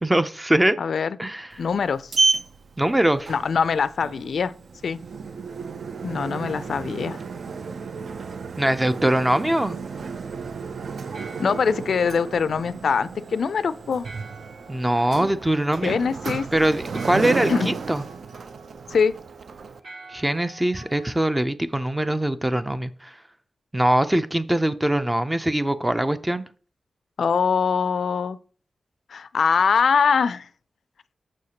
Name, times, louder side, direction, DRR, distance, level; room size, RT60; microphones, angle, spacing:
voice 1, 0.0-0.8 1.2-1.5 2.8-3.3 8.6-9.8 14.7-15.9 16.5-18.0 20.1-23.1 23.7-26.4, right 1 dB, 15° right, 0.4 m, -22 dB
voice 2, 0.8-1.2 1.6-2.1 3.3-4.5 4.8-5.0 6.0-7.2 11.4-14.1 15.8-16.5 17.5-17.7 18.9-19.1 27.2-28.4 29.1-30.5, left 6 dB, 75° left, 0.3 m, -23 dB
Sliding door, 1.5-19.8, right 4 dB, 70° right, 0.4 m, -32 dB
sound 1, 4.0-21.2, right 3 dB, 90° right, 2.3 m, -50 dB
6.4 x 6.3 x 2.8 m
wide cardioid pair, 90°, 0 cm